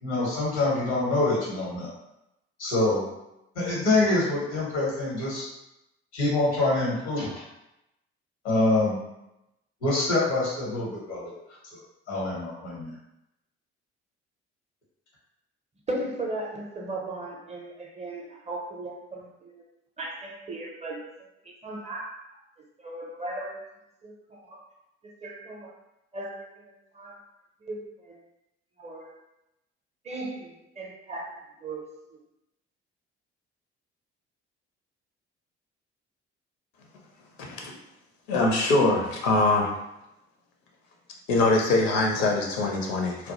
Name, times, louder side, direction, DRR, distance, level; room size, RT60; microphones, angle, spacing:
voice 1, 0.0-1.9 2.6-3.1 3.5-5.5 6.1-7.4 8.4-9.0 9.8-11.3 11.7-11.8 12.1-12.9, left 2 dB, 75° left, -5 dB, 1.0 m, -25 dB
voice 2, 15.9-19.6 20.0-21.1 21.4-22.2 22.8-23.5 24.0-24.6 25.2-25.7 26.1-27.2 27.6-28.2 28.8-29.2 30.0-31.9 32.1-32.2, right 2 dB, 20° right, -1 dB, 0.5 m, -37 dB
voice 3, 37.4-37.7 38.3-39.7 41.3-43.3, left 2 dB, 60° left, 0 dB, 0.6 m, -23 dB
2.2 x 2.1 x 2.8 m, 0.89 s
figure-of-eight pair, 50°, 34 cm